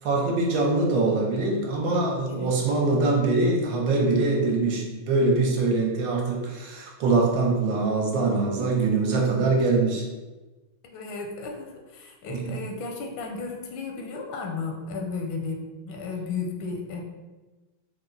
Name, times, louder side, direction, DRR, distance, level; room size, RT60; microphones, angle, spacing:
voice 1, 0.0-10.0 12.3-12.5, right 3 dB, 75° right, -1 dB, 1.3 m, -23 dB
voice 2, 10.8-17.0, left 4 dB, 85° left, 2 dB, 1.4 m, -34 dB
4.2 x 2.1 x 3.8 m, 1.2 s
omnidirectional pair, 2.1 m